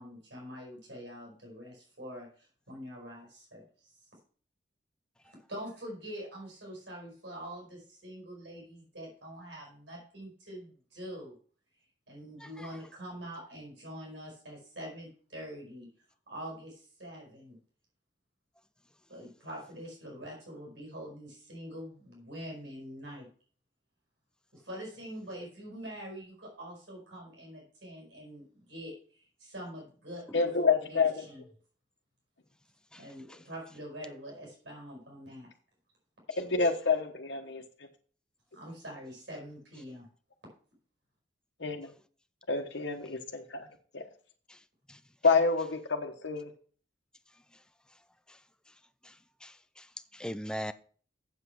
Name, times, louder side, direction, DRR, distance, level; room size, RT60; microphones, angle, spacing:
voice 1, 0.0-4.1 5.2-11.3 12.1-15.9 16.3-17.6 19.1-23.3 24.5-30.5 30.8-31.4 32.9-35.5 38.5-40.1, equal, 80° right, -1 dB, 5.0 m, -45 dB
voice 2, 30.3-31.2 36.4-37.6 41.6-41.9 42.5-43.7 43.9-44.0 45.2-46.5, left 4 dB, 75° left, 3 dB, 1.2 m, -28 dB
voice 3, 49.4-49.9 50.1-50.7, equal, 5° left, 12 dB, 0.4 m, -39 dB
8.2 x 7.2 x 5.9 m, 0.43 s
head